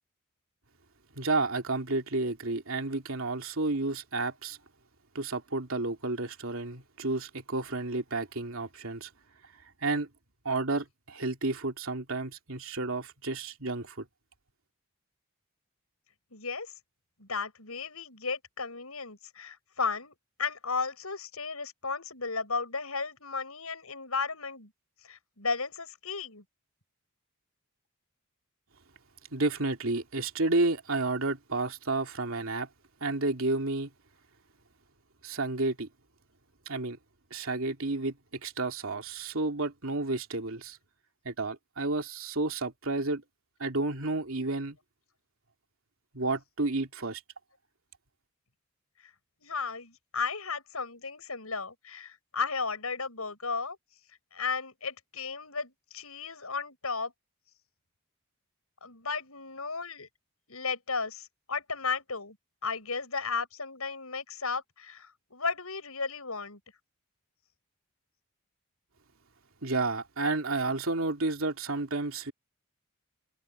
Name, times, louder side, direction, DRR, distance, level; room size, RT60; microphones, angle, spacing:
voice 1, 1.1-4.6 5.1-9.1 9.8-10.1 10.4-14.0 29.3-32.7 33.0-33.9 35.2-35.9 36.7-37.0 37.3-38.2 38.4-40.8 41.2-43.2 43.6-44.8 46.1-47.2 69.6-72.3, right 2 dB, 70° right, 2.8 m, -31 dB
voice 2, 16.3-16.7 17.2-24.7 25.0-26.4 49.4-53.8 54.3-57.1 58.8-60.1 60.5-62.4 62.6-66.6, left 4 dB, 80° left, 7.3 m, -34 dB
head